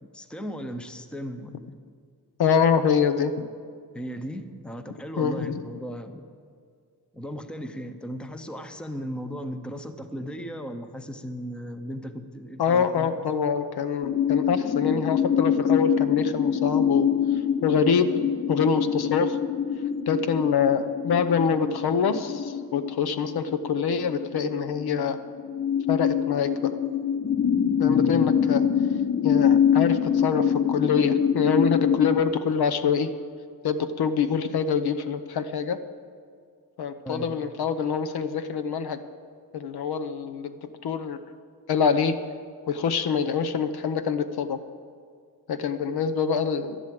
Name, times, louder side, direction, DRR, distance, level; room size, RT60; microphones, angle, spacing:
voice 1, 0.0-1.8 3.9-6.2 7.1-13.2 27.9-28.3 37.0-37.3, equal, ahead, 8 dB, 0.7 m, -36 dB
voice 2, 2.4-3.5 5.2-5.6 12.6-17.1 17.6-19.4 20.1-25.2 25.9-26.7 27.8-28.6 29.2-33.1 33.6-35.8 36.8-39.0 39.5-41.2 41.7-42.2 42.7-44.6 45.5-46.8, left 6 dB, 70° left, 9 dB, 0.9 m, -25 dB
sound 1, 14.0-32.2, left 8 dB, 30° left, 0.4 m, -25 dB
12.5 x 11.0 x 7.7 m, 2.1 s
wide cardioid pair, 135°, 39 cm